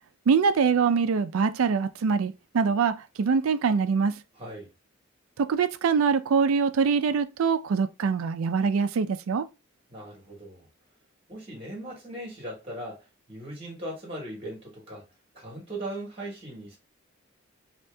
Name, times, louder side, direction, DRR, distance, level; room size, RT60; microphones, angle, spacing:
voice 1, 0.3-4.2 5.4-9.5, right 5 dB, 90° right, 0.4 m, -24 dB
voice 2, 4.3-4.7 9.9-10.7 11.3-15.0 15.3-16.8, right 1 dB, 25° right, 1.3 m, -39 dB
2.8 x 2.7 x 3.3 m
head